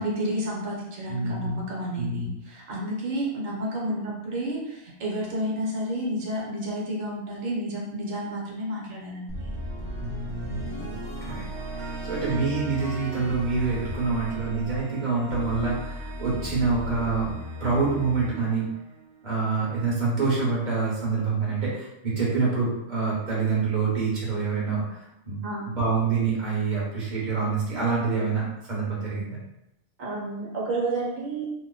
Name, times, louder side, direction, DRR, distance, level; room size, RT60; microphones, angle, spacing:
voice 1, 0.0-9.5 25.4-25.7 30.0-31.5, right 1 dB, 85° right, -3 dB, 1.3 m, -31 dB
voice 2, 1.1-1.6 2.0-2.3 10.0-10.8 11.2-17.3 17.6-18.7 19.2-25.4 25.6-29.4, right 4 dB, 40° right, -6 dB, 1.2 m, -26 dB
sound 1, 9.3-19.5, equal, 20° right, 1.0 m, -36 dB
3.0 x 2.1 x 3.8 m, 0.85 s
omnidirectional pair, 1.3 m